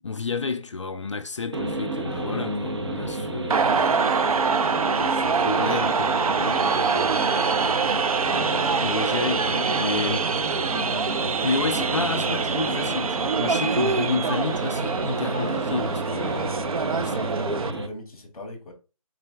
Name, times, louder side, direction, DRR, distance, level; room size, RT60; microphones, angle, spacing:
voice 1, 0.0-4.0 5.0-7.5 8.8-10.3 11.4-16.5 16.9-17.6, left 4 dB, 55° left, 0.5 m, -31 dB
sound 1, 1.5-17.9, right 2 dB, 50° right, 0.8 m, -31 dB
sound 2, 2.0-17.5, left 1 dB, 35° right, 1.2 m, -40 dB
sound 3, 3.5-17.7, right 5 dB, 80° right, 0.4 m, -25 dB
voice 2, 17.0-18.7, left 1 dB, 5° left, 0.6 m, -39 dB
3.8 x 3.2 x 3.3 m
hypercardioid pair, 175°, 18 cm